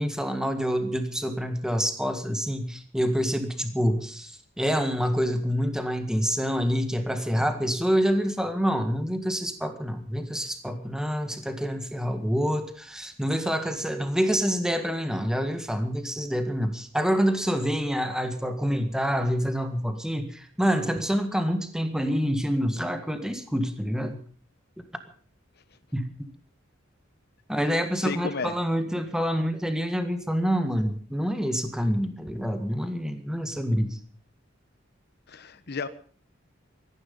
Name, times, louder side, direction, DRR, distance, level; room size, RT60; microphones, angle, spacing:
voice 1, 0.0-4.3 4.6-24.2 25.9-26.0 27.5-34.0, equal, 5° right, 8 dB, 1.8 m, -27 dB
voice 2, 28.0-28.6 35.3-35.9, left 4 dB, 55° left, 12 dB, 1.1 m, -32 dB
18.5 x 14.5 x 5.5 m, 0.44 s
head